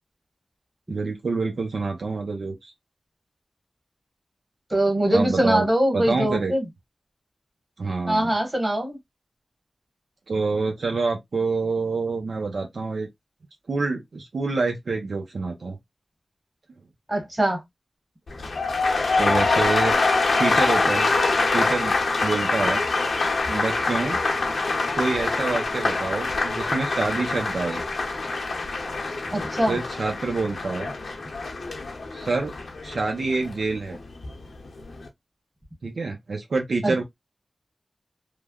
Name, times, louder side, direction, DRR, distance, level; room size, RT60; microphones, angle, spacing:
voice 1, 0.9-2.7 5.1-5.7 5.9-6.5 7.8-8.3 10.3-13.1 13.7-15.8 19.2-19.9 20.4-21.1 21.5-21.9 22.2-22.8 23.5-24.2 25.0-27.8 29.7-30.9 32.1-32.6 32.8-34.0 35.8-37.0, right 3 dB, 80° right, 0.7 m, -27 dB
voice 2, 4.7-6.7 8.1-9.0 17.1-17.6 29.3-29.8 36.8-37.0, right 1 dB, 25° right, 1.4 m, -22 dB
sound 1, 18.3-34.3 34.6-35.1, left 3 dB, 85° left, 0.8 m, -25 dB
3.2 x 2.1 x 2.3 m
cardioid pair, 55°, 0 cm